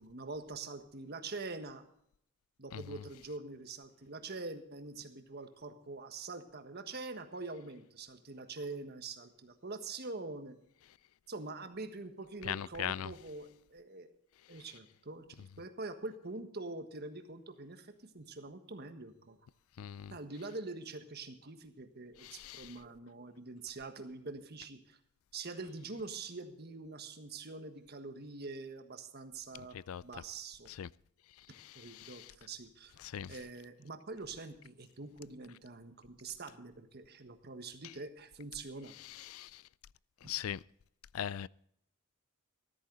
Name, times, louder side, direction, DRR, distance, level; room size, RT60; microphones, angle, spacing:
voice 1, 0.0-1.8 2.6-10.6 11.3-14.1 14.5-15.3 15.6-19.4 20.1-25.0 25.3-29.8 30.0-30.7 31.7-32.9 33.3-38.9 40.2-40.3, right 3 dB, 50° right, 1.5 m, -45 dB
voice 2, 12.4-13.1 19.8-20.1 22.2-22.7 29.7-30.0 30.7-30.9 31.5-32.3 33.0-33.3 39.0-39.6 40.2-40.6 41.1-41.5, left 10 dB, 80° left, 0.4 m, -40 dB
14.0 x 13.5 x 3.9 m
head